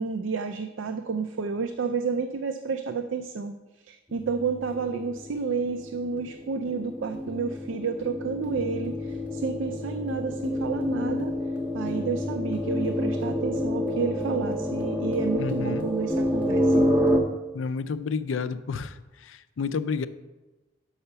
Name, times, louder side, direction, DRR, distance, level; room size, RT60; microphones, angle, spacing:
voice 1, 0.0-3.5 3.9-11.3 11.7-16.9, right 5 dB, 85° right, 8 dB, 0.4 m, -30 dB
sound 1, 4.1-17.2, left 1 dB, 10° right, 0.6 m, -28 dB
voice 2, 15.4-15.9 17.5-18.9 19.2-20.1, left 5 dB, 90° left, 14 dB, 0.4 m, -30 dB
5.6 x 5.6 x 6.7 m, 1.1 s
head